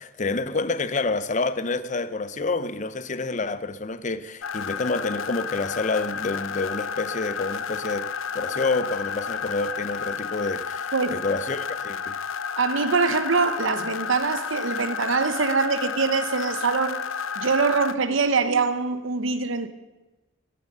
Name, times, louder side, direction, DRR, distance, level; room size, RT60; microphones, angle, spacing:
voice 1, 0.0-8.1 8.3-12.2, left 3 dB, 35° left, 0.7 m, -28 dB
sound 1, 4.4-18.0, left 7 dB, 80° left, 0.6 m, -31 dB
voice 2, 12.6-17.0 17.4-19.7, right 4 dB, 75° right, 0.9 m, -23 dB
14.5 x 12.0 x 6.7 m
head